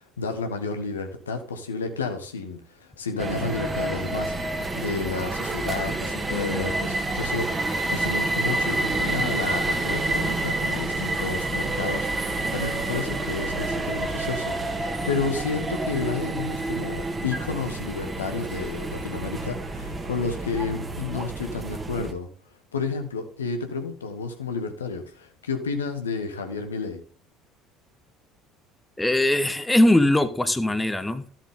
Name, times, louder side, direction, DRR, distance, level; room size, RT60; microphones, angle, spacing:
voice 1, 0.0-4.3 4.7-22.3 22.7-27.0, left 4 dB, 80° left, 6 dB, 1.3 m, -31 dB
sound 1, 3.2-22.1, right 2 dB, 20° right, 1.7 m, -28 dB
voice 2, 29.0-31.2, left 1 dB, 10° left, 12 dB, 1.0 m, -20 dB
13.0 x 7.3 x 3.7 m, 0.39 s
figure-of-eight pair, 60°, 0 cm